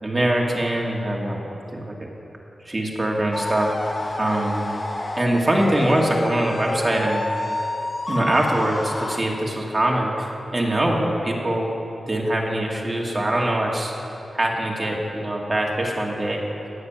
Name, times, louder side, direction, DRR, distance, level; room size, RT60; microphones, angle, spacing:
voice 1, 0.0-1.4 1.7-1.9 2.6-3.7 4.2-4.6 5.2-7.2 8.1-11.7 12.1-13.9 14.3-16.4, right 1 dB, 25° right, -2 dB, 2.1 m, -23 dB
sound 1, 3.3-9.2, left 2 dB, 35° left, 0.9 m, -29 dB
18.0 x 6.7 x 9.1 m, 3.0 s
wide cardioid pair, 135°, 0 cm